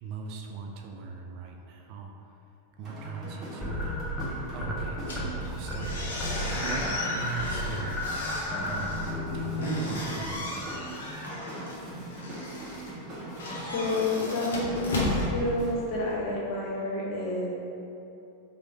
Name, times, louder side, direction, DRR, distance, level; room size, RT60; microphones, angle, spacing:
voice 1, 0.0-2.1 2.8-3.9 4.5-6.1 6.5-8.0 8.5-10.9, right 5 dB, 45° right, 2 dB, 0.4 m, -39 dB
sound 1, 2.8-15.8, right 1 dB, 25° right, 1.2 m, -42 dB
sound 2, 3.6-4.8 5.1-5.4 5.7-10.4, left 1 dB, 10° left, 0.6 m, -33 dB
sound 3, 5.0-16.1, left 1 dB, 65° left, 0.7 m, -35 dB
voice 2, 13.1-15.0 15.3-17.5, left 2 dB, 40° left, -5 dB, 1.0 m, -30 dB
3.1 x 3.0 x 4.0 m, 2.8 s
figure-of-eight pair, 90°, 0 cm